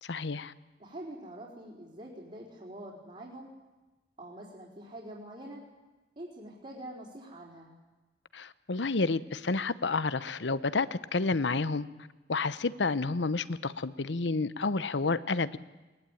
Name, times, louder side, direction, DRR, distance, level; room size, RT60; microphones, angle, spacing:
voice 1, 0.0-0.5 8.3-11.9 12.3-15.6, left 3 dB, 80° left, 0.8 m, -30 dB
voice 2, 0.8-3.5 4.2-5.6 6.2-7.7, right 1 dB, 40° right, 4.3 m, -45 dB
21.5 x 20.0 x 9.2 m
head